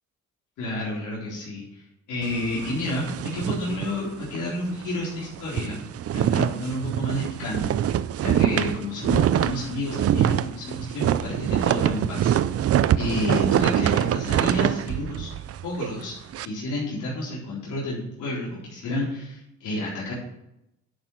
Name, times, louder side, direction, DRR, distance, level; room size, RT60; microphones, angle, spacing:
voice 1, 0.6-1.8 2.1-5.8 6.1-15.3 15.6-20.1, left 1 dB, 80° left, -7 dB, 4.1 m, -30 dB
sound 1, 2.2-4.5 4.8-5.0 5.3-16.5, right 10 dB, 50° right, 0.5 m, -24 dB
11.0 x 7.0 x 6.0 m, 0.84 s
cardioid pair, 90°, 30 cm